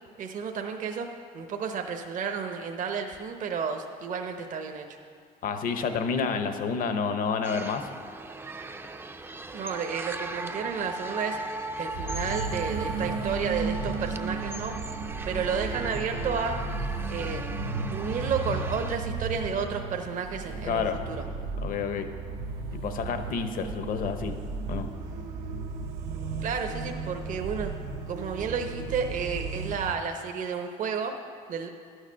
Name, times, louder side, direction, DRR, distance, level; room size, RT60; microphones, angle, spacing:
voice 1, 0.2-1.1 1.3-5.0 9.5-14.8 15.2-16.6 17.1-17.5 17.9-21.2 26.4-27.7 28.1-31.1 31.5-31.7, right 6 dB, 55° right, 4 dB, 0.8 m, -32 dB
voice 2, 5.4-7.9 20.6-21.0 21.6-22.1 22.8-24.4 24.7-24.9, left 5 dB, 60° left, 8 dB, 0.9 m, -29 dB
sound 1, 7.4-19.0, right 2 dB, 15° right, 0.4 m, -38 dB
sound 2, 11.9-30.0, right 4 dB, 85° right, 0.7 m, -34 dB
11.5 x 6.5 x 6.2 m, 2.1 s
cardioid pair, 100°, 16 cm